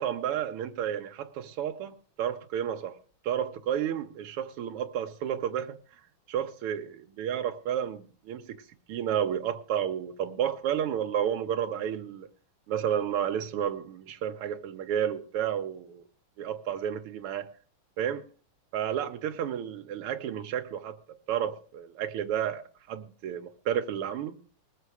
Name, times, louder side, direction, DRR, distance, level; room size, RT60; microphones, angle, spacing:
voice 1, 0.0-3.0 3.2-5.8 6.3-8.6 8.9-12.3 12.7-16.0 16.4-17.5 18.0-18.3 18.7-22.6 22.9-24.4, right 9 dB, 90° right, 1.8 m, -31 dB
20.0 x 7.2 x 4.8 m
omnidirectional pair, 2.4 m